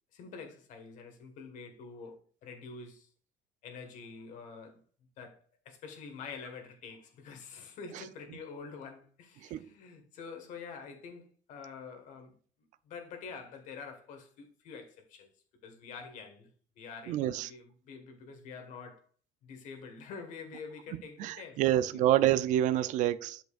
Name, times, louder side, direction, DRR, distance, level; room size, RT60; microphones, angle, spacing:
voice 1, 0.1-3.1 3.6-4.8 5.2-12.4 12.8-15.3 15.6-16.5 16.8-19.1 19.4-22.0, left 5 dB, 70° left, 1.7 m, -47 dB
voice 2, 17.1-17.5 21.2-23.4, right 12 dB, 70° right, 0.4 m, -27 dB
8.1 x 6.6 x 2.5 m
cardioid pair, 110°, 14 cm